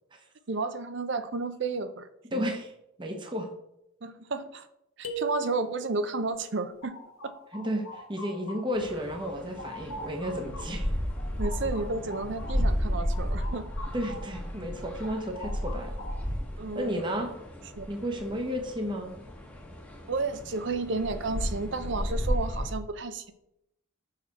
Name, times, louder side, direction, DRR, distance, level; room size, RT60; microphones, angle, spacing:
voice 1, 0.5-2.5 4.0-4.7 5.0-7.0 7.2-7.3 11.4-13.7 16.6-17.0 17.8-17.9 20.1-23.3, right 3 dB, 55° right, 11 dB, 0.6 m, -32 dB
voice 2, 2.3-2.7 3.0-3.5 7.5-10.9 13.9-16.0 16.7-17.3 17.9-19.2, equal, 25° right, 4 dB, 0.9 m, -33 dB
sound 1, 5.0-6.2, right 5 dB, 90° left, 1.1 m, -37 dB
sound 2, 6.3-8.9 9.2-14.4 14.7-16.4, left 1 dB, 70° left, 1.5 m, -45 dB
sound 3, 8.7-22.7, equal, 10° left, 1.1 m, -33 dB
6.6 x 5.9 x 4.1 m, 0.80 s
head